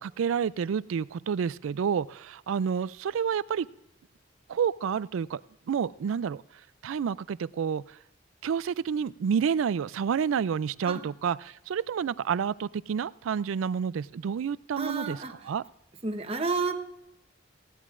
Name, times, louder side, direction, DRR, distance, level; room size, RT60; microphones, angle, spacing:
voice 1, 0.0-3.7 4.5-5.4 5.7-6.4 6.8-7.8 8.4-15.2 15.5-15.6, right 7 dB, 85° right, 19 dB, 0.3 m, -29 dB
voice 2, 14.8-15.5 16.0-16.7, right 3 dB, 30° right, 6 dB, 1.0 m, -31 dB
19.0 x 16.0 x 2.5 m, 0.86 s
head